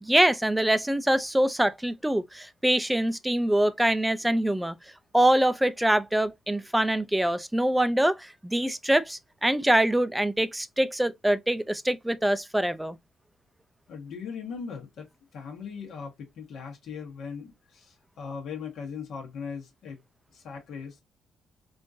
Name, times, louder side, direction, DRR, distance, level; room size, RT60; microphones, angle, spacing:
voice 1, 0.0-4.8 5.1-13.0, right 1 dB, 5° right, 0.4 m, -24 dB
voice 2, 13.9-15.1 15.3-20.0 20.3-21.0, left 6 dB, 70° left, 1.1 m, -39 dB
3.6 x 2.5 x 2.5 m
cardioid pair, 90°, 0 cm